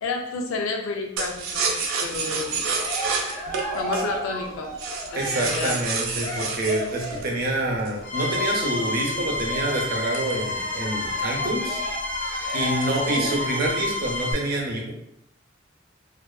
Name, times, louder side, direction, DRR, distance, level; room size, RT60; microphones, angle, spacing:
voice 1, 0.0-2.6 3.7-4.8 5.1-5.8 11.4-11.7 13.1-13.3, left 3 dB, 85° left, 3 dB, 0.4 m, -30 dB
sound 1, 1.2-8.1 8.6-11.1 11.4-11.5 11.8-12.2 12.6-13.3 13.6-14.2, right 4 dB, 90° right, 0.4 m, -30 dB
Cheering, 2.4-7.4 8.1-13.7, equal, 20° left, 0.6 m, -35 dB
voice 2, 5.1-11.8 12.5-14.9, right 1 dB, 50° right, -1 dB, 0.6 m, -27 dB
sound 2, 8.0-14.3, left 2 dB, 60° left, 0.9 m, -29 dB
2.4 x 2.4 x 2.2 m, 0.74 s
head